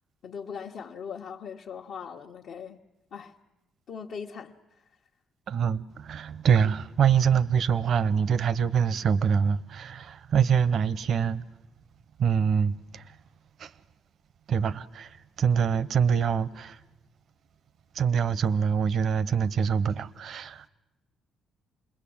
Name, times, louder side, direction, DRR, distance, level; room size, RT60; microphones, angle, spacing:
voice 1, 0.2-2.8 3.1-3.3 3.9-4.5, left 6 dB, 65° left, 1.2 m, -39 dB
voice 2, 5.5-11.4 12.2-13.0 13.6-13.7 14.5-16.8 17.9-20.7, right 7 dB, 60° right, 0.8 m, -25 dB
27.5 x 21.0 x 8.7 m
cardioid pair, 105°, 0 cm